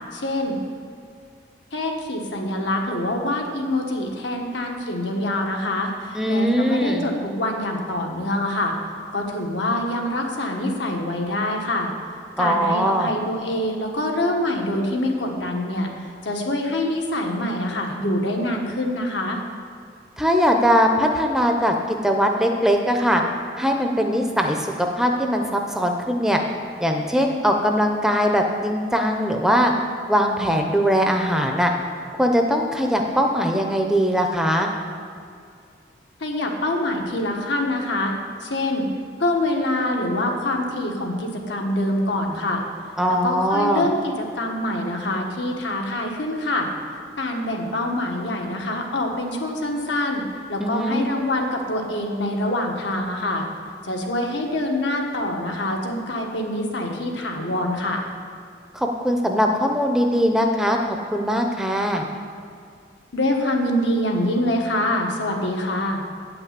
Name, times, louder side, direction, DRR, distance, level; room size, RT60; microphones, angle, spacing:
voice 1, 0.1-0.6 1.7-8.7 9.1-11.9 12.4-19.4 36.2-38.1 38.4-38.9 39.2-42.6 43.1-46.7 47.2-50.2 50.5-53.4 53.8-58.0 63.1-66.0, left 1 dB, 75° left, 1 dB, 1.4 m, -25 dB
voice 2, 6.1-7.0 12.4-13.1 20.2-23.2 23.6-26.4 26.8-29.7 30.1-31.7 32.2-34.7 43.0-43.8 50.6-51.0 58.7-62.1, equal, 5° right, 2 dB, 0.6 m, -21 dB
9.0 x 5.8 x 8.1 m, 2.4 s
head